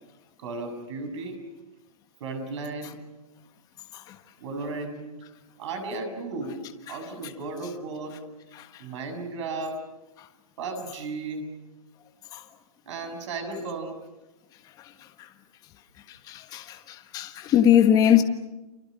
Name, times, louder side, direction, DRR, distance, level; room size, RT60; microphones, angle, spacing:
voice 1, 0.4-1.4 2.2-3.0 4.4-5.0 5.6-8.2 8.8-9.8 10.6-11.5 12.9-14.0 18.1-18.2, right 3 dB, 50° right, 7.3 m, -34 dB
voice 2, 16.3-16.8 17.1-18.2, left 10 dB, 20° left, 1.5 m, -19 dB
29.5 x 28.0 x 6.4 m
hypercardioid pair, 155°, 20 cm